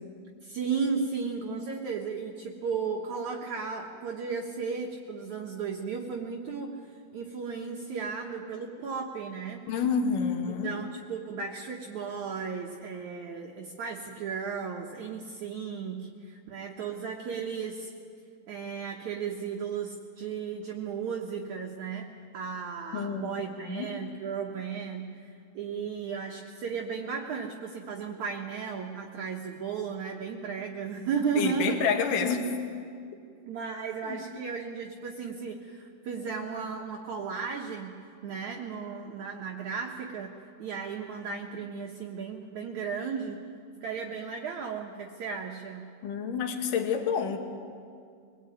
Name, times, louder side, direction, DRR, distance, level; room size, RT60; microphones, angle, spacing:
voice 1, 0.4-6.7 7.1-9.6 10.5-17.9 18.5-22.1 22.3-31.8 33.5-43.4 43.8-45.9, right 6 dB, 60° right, 0 dB, 2.3 m, -35 dB
voice 2, 9.7-10.7 22.9-23.3 23.6-24.0 31.4-32.5 34.1-34.2 46.0-47.4, left 6 dB, 60° left, 5 dB, 3.1 m, -28 dB
23.5 x 19.5 x 9.3 m, 2.3 s
omnidirectional pair, 4.6 m